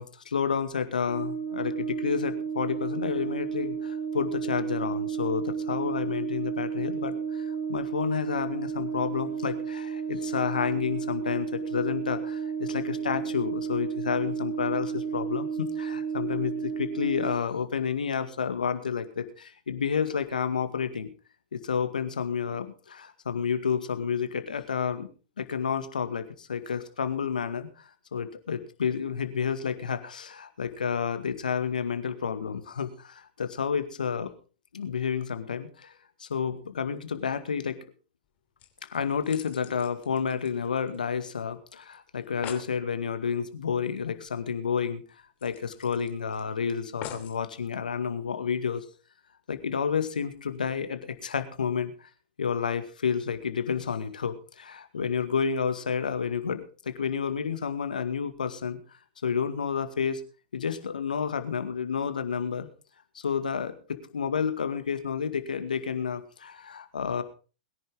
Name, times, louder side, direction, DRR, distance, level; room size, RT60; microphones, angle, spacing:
voice 1, 0.0-21.1 21.5-25.1 25.4-27.7 28.1-34.3 34.7-35.9 36.2-37.8 38.9-45.0 45.4-48.8 49.5-52.1 52.4-58.8 59.2-60.2 60.5-62.7 63.2-67.2, left 6 dB, 80° left, 10 dB, 2.0 m, -30 dB
Brass instrument, 1.1-17.4, right 6 dB, 35° right, 4.0 m, -32 dB
sound 1, 38.2-38.3 38.6-41.2 41.5-41.6 41.9-42.0 42.2-42.7 44.2-44.3 44.7-44.8 45.4-46.4 47.0-47.4 48.1-48.2, left 9 dB, 35° left, 3.1 m, -44 dB
21.5 x 10.5 x 3.7 m, 0.35 s
hypercardioid pair, 105°, 4 cm